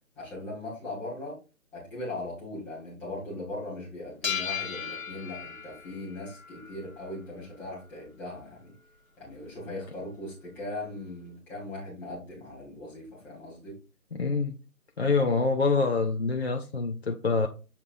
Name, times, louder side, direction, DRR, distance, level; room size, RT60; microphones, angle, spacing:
voice 1, 0.1-1.4 1.7-8.7 9.2-13.8, left 2 dB, 5° left, 1.2 m, -39 dB
sound 1, 4.2-7.2, left 7 dB, 65° left, 1.3 m, -36 dB
voice 2, 14.1-14.5 15.0-17.5, left 4 dB, 45° left, 0.5 m, -26 dB
7.1 x 5.4 x 2.5 m
figure-of-eight pair, 155°, 45 cm